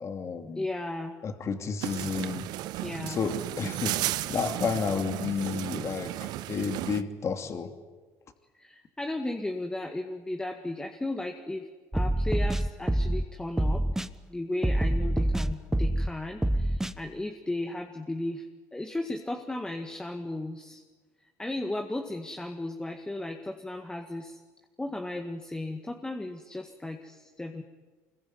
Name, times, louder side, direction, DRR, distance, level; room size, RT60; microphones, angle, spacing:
voice 1, 0.0-0.7 1.2-2.5 3.0-7.7, left 5 dB, 40° left, 7 dB, 2.7 m, -31 dB
voice 2, 0.6-1.2 2.8-3.2 8.5-11.7 11.9-14.0 14.3-18.4 18.7-20.8 21.4-24.4 24.8-27.6, left 2 dB, 10° left, 4 dB, 1.9 m, -35 dB
sound 1, 1.8-7.0, right 15 dB, 70° right, 1.0 m, -34 dB
sound 2, 11.9-13.2 13.6-14.1 14.6-16.1 16.4-16.9, right 1 dB, 5° right, 1.1 m, -26 dB
25.0 x 21.5 x 9.6 m, 1.4 s
supercardioid pair, 95°, 7 cm